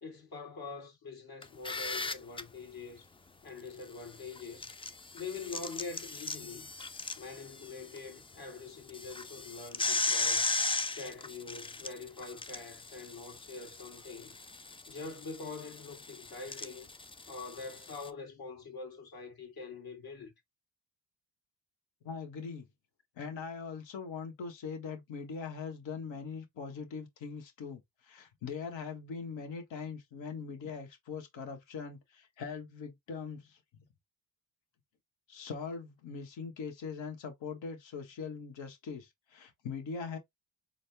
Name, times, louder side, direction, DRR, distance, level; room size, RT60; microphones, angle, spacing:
voice 1, 0.0-3.1 3.4-4.7 5.1-6.7 7.2-10.6 10.9-14.3 14.9-16.9 17.3-20.3, left 4 dB, 50° left, 1.9 m, -44 dB
sound 1, 1.4-2.4 4.3-8.0 8.3-8.4 8.9-18.1, left 3 dB, 15° left, 0.3 m, -37 dB
voice 2, 22.0-22.7 23.2-33.6 35.3-40.2, left 5 dB, 65° left, 1.3 m, -41 dB
4.0 x 2.2 x 3.3 m
supercardioid pair, 60°, 49 cm